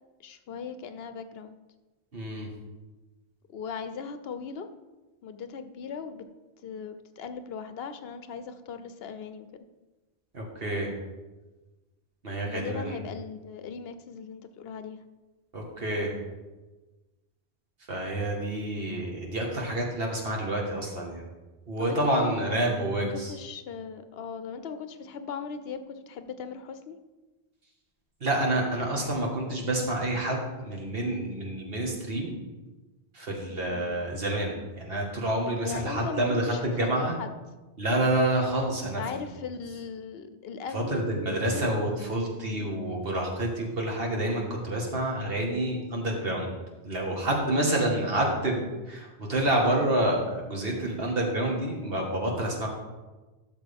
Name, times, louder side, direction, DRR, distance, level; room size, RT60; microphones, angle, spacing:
voice 1, 0.2-1.6 3.5-4.7 5.2-6.3 6.6-9.5 12.5-15.0 21.8-22.6 23.0-27.0 33.6-34.0 35.6-37.3 39.0-41.9 42.5-42.8, left 6 dB, 70° left, 10 dB, 0.8 m, -38 dB
voice 2, 2.1-2.5 10.3-10.9 12.2-13.0 15.5-16.1 17.9-21.2 21.7-23.3 28.2-32.3 33.1-37.2 37.8-39.2 40.7-46.5 46.8-52.7, right 1 dB, 65° right, 0 dB, 1.9 m, -28 dB
12.5 x 6.5 x 3.5 m, 1.2 s
omnidirectional pair, 1.1 m